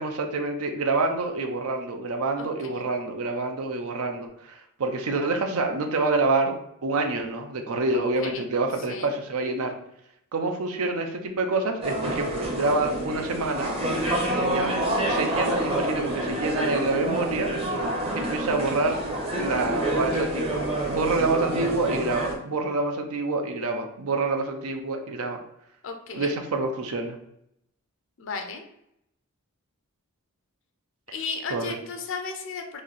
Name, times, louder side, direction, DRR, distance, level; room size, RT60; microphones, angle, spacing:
voice 1, 0.0-6.5 6.8-9.8 10.3-13.7 14.4-14.7 15.1-17.5 18.2-19.0 19.4-25.4 26.1-27.2 31.5-31.8, right 3 dB, 75° right, 5 dB, 0.6 m, -27 dB
voice 2, 2.4-2.8 7.9-8.5 8.9-9.1 25.8-26.3 28.2-28.6 31.1-32.8, left 4 dB, 55° left, 5 dB, 0.5 m, -35 dB
sound 1, 11.8-22.3, right 1 dB, 25° right, 0.7 m, -27 dB
3.1 x 2.7 x 3.9 m, 0.77 s
head